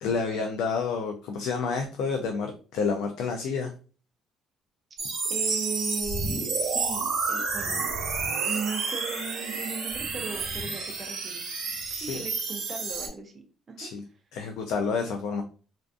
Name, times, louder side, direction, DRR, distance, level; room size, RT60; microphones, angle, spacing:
voice 1, 0.0-3.7 12.0-12.2 13.8-14.0 14.3-15.4, left 5 dB, 75° left, 3 dB, 0.3 m, -29 dB
sound 1, 5.0-13.1, right 4 dB, 65° right, 0.9 m, -30 dB
voice 2, 5.3-7.8 8.4-11.5 11.9-13.3 13.7-13.9, right 5 dB, 20° right, 2 dB, 0.4 m, -37 dB
2.5 x 2.4 x 2.3 m, 0.38 s
cardioid pair, 180°, 0 cm